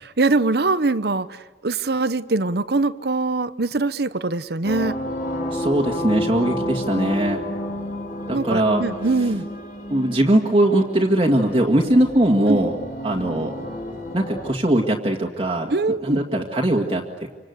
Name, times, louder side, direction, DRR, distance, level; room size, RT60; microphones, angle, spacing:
voice 1, 0.0-5.0 8.3-9.5 12.5-12.6 15.7-16.2, right 3 dB, 60° right, 13 dB, 0.9 m, -22 dB
sound 1, 4.6-14.5, equal, 50° left, 4.3 m, -31 dB
voice 2, 5.5-7.4 8.3-8.8 9.9-12.8 13.0-13.5 14.1-15.7 16.0-17.3, right 1 dB, 30° right, 0 dB, 2.1 m, -20 dB
27.5 x 26.0 x 8.1 m, 1.3 s
head